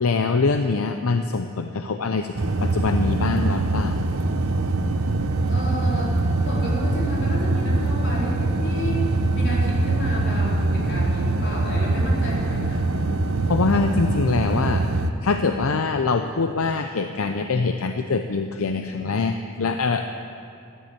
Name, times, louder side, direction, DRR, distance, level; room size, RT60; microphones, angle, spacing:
voice 1, 0.0-4.0 13.5-14.8 15.2-20.0, left 4 dB, 80° left, 7 dB, 0.6 m, -24 dB
sound 1, 2.4-15.1, right 2 dB, 75° right, 0.9 m, -23 dB
voice 2, 5.5-6.1 6.4-12.9, equal, 55° left, -5 dB, 4.1 m, -32 dB
13.5 x 10.5 x 8.9 m, 2.6 s
head